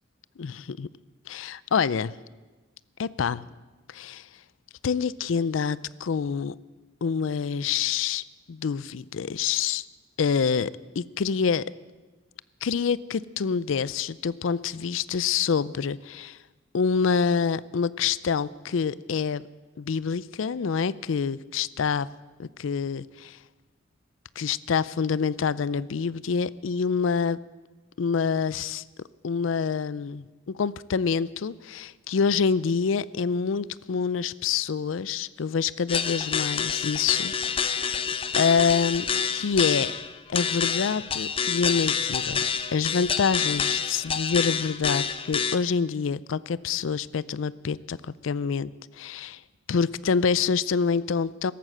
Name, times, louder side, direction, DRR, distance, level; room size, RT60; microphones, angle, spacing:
voice 1, 0.4-0.9 1.3-2.1 3.0-3.4 3.9-4.3 4.8-6.5 7.0-9.8 10.2-11.7 12.6-16.4 16.7-19.4 19.8-22.1 22.4-23.4 24.4-27.4 28.0-28.8 29.2-38.0 38.4-39.1 39.3-39.9 40.3-48.0 48.2-49.4 49.7-51.5, left 6 dB, 80° left, 19 dB, 0.4 m, -26 dB
sound 1, 35.9-45.6, left 6 dB, 30° left, 0.6 m, -28 dB
14.5 x 12.0 x 7.6 m, 1.2 s
head